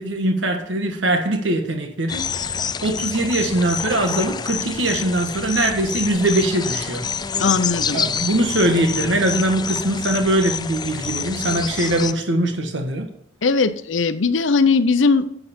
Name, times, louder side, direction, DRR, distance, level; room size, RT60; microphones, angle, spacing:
voice 1, 0.0-7.0 7.9-13.1, right 1 dB, 75° right, 4 dB, 1.4 m, -21 dB
sound 1, 2.1-12.1, left 6 dB, 20° left, 0.4 m, -27 dB
voice 2, 7.4-8.0 13.4-15.3, left 4 dB, 80° left, 12 dB, 0.7 m, -19 dB
10.0 x 7.8 x 4.3 m, 0.76 s
head